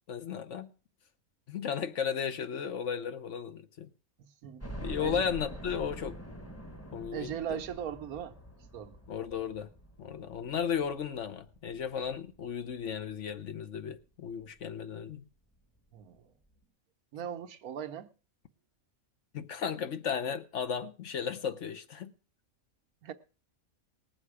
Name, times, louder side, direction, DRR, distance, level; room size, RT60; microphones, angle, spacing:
voice 1, 0.1-0.7 1.5-3.9 4.8-6.2 6.9-7.3 9.1-9.7 10.0-15.2 19.3-22.1, left 7 dB, 60° left, 1.1 m, -35 dB
voice 2, 4.2-4.6 5.0-5.2 7.1-8.3 8.7-9.0 15.9-16.3 17.1-18.1 23.0-23.1, right 9 dB, 85° right, 1.4 m, -39 dB
sound 1, 4.6-13.5 14.0-14.1 14.5-14.6 15.8-15.9 16.1-16.2, right 1 dB, 10° left, 1.1 m, -46 dB
19.5 x 7.7 x 4.8 m
omnidirectional pair, 1.5 m